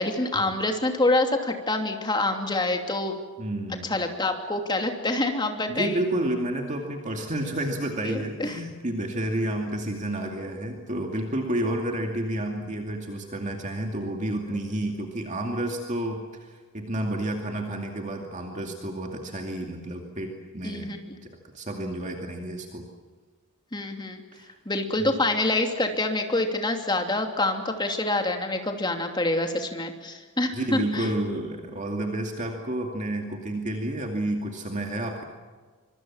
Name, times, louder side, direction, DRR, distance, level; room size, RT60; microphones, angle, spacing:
voice 1, 0.0-3.2 3.9-6.0 8.0-8.6 20.6-21.2 23.7-24.2 24.7-31.1, left 2 dB, 20° left, 4 dB, 2.8 m, -26 dB
voice 2, 3.4-3.9 5.7-20.9 21.5-22.8 24.3-24.6 25.0-25.1 30.5-35.2, right 1 dB, 35° right, 2 dB, 2.4 m, -30 dB
25.0 x 24.5 x 7.4 m, 1.5 s
head